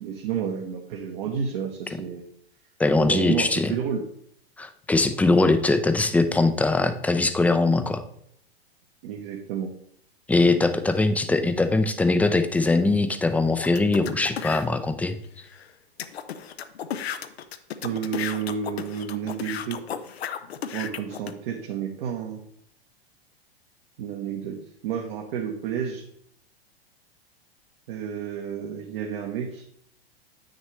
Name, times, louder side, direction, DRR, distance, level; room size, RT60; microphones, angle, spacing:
voice 1, 0.0-2.2 3.0-4.0 9.0-9.7 17.8-19.8 20.7-22.4 24.0-26.0 27.9-29.6, right 8 dB, 60° right, 2 dB, 1.1 m, -31 dB
voice 2, 2.8-3.7 4.6-8.0 10.3-15.2, left 3 dB, 5° left, 9 dB, 0.5 m, -21 dB
sound 1, 13.6-14.6 15.2-15.3 15.6-15.7 16.0-21.3, left 8 dB, 80° left, 0.7 m, -34 dB
8.4 x 6.5 x 3.2 m, 0.70 s
hypercardioid pair, 100°, 31 cm